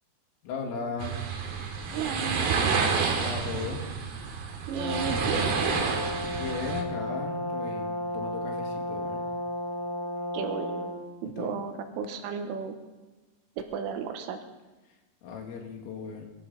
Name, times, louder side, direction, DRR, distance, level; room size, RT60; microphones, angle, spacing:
voice 1, 0.4-1.2 3.1-3.9 6.3-9.2 11.2-11.5 15.2-16.3, left 5 dB, 85° left, 2 dB, 4.8 m, -36 dB
sound 1, 1.0-6.8, right 5 dB, 60° right, 3.4 m, -29 dB
voice 2, 1.9-2.5 4.7-5.4 10.3-10.9 11.2-12.8 13.6-14.4, right 6 dB, 90° right, 6 dB, 3.8 m, -34 dB
Brass instrument, 4.7-11.0, left 1 dB, 70° left, 4.5 m, -33 dB
23.5 x 13.0 x 4.1 m, 1.2 s
omnidirectional pair, 5.7 m